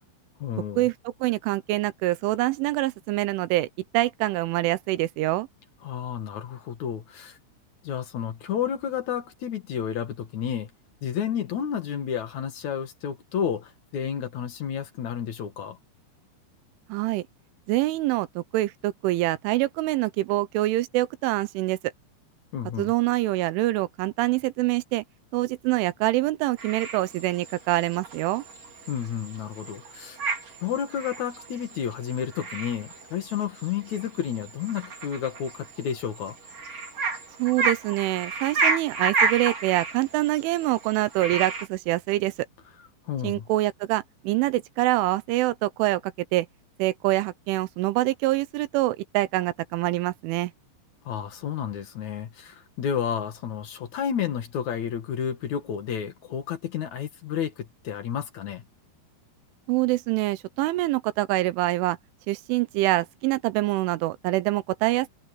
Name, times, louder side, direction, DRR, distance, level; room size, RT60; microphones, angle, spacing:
voice 1, 0.4-0.8 5.8-7.4 7.8-10.7 11.0-15.8 22.5-22.9 28.9-30.2 30.6-36.4 43.1-43.5 51.1-58.6, left 8 dB, 60° left, 2.0 m, -31 dB
voice 2, 1.2-3.7 3.9-5.5 16.9-17.2 17.7-21.8 22.8-25.0 25.3-28.4 37.4-42.5 43.2-46.5 46.8-50.5 59.7-62.0 62.3-65.1, right 17 dB, 80° right, 3.2 m, -25 dB
sound 1, 26.6-41.7, right 4 dB, 35° right, 4.8 m, -32 dB
omnidirectional pair, 5.6 m